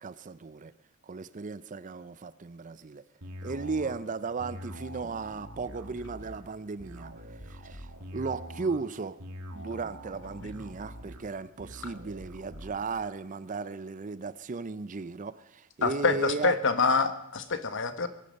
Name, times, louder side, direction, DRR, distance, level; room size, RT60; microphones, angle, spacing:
voice 1, 0.0-0.7 1.0-3.0 3.4-9.2 9.5-16.6, right 4 dB, 35° right, 0.5 m, -36 dB
sound 1, 3.2-12.8, equal, 75° right, 2.1 m, -44 dB
voice 2, 15.8-18.1, left 4 dB, 60° left, 1.2 m, -26 dB
22.0 x 10.0 x 5.3 m
head